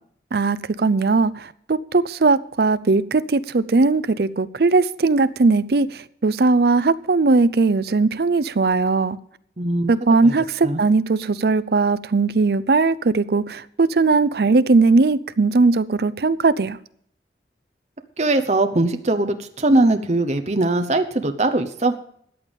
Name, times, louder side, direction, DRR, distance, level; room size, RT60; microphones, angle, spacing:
voice 1, 0.3-5.9 6.2-9.2 9.9-16.8, right 3 dB, 60° right, 0.5 m, -19 dB
voice 2, 9.6-9.9 10.2-10.4 10.6-10.8 18.2-21.9, right 2 dB, 40° right, 0.9 m, -20 dB
13.5 x 9.1 x 5.3 m
head